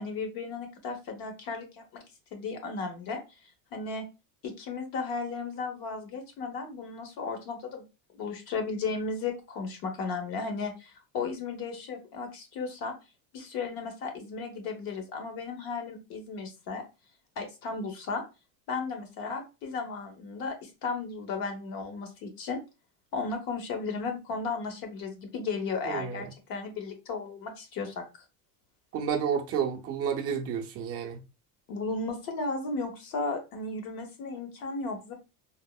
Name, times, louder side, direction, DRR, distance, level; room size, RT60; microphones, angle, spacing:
voice 1, 0.0-2.0 2.3-3.2 3.7-4.0 4.4-7.9 8.1-12.9 13.3-16.8 17.4-18.2 18.7-22.6 23.1-28.0 31.7-35.1, left 4 dB, 50° left, 1.0 m, -35 dB
voice 2, 25.8-26.3 28.9-31.2, right 7 dB, 35° right, 0.5 m, -30 dB
3.5 x 2.0 x 2.2 m
cardioid pair, 145°, 45 cm